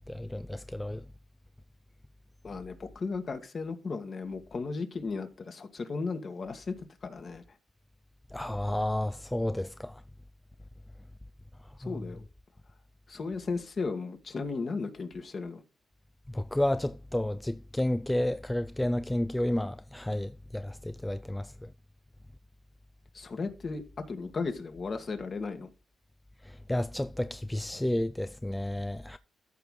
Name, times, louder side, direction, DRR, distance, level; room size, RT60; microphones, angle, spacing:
voice 1, 0.1-1.0 8.3-10.0 11.8-12.0 16.3-21.7 26.4-29.2, left 1 dB, 10° left, 0.4 m, -31 dB
voice 2, 2.4-6.8 7.0-7.4 11.8-12.2 13.1-15.6 23.1-25.7, left 4 dB, 50° left, 1.7 m, -35 dB
14.0 x 4.8 x 3.8 m
cardioid pair, 70°, 0 cm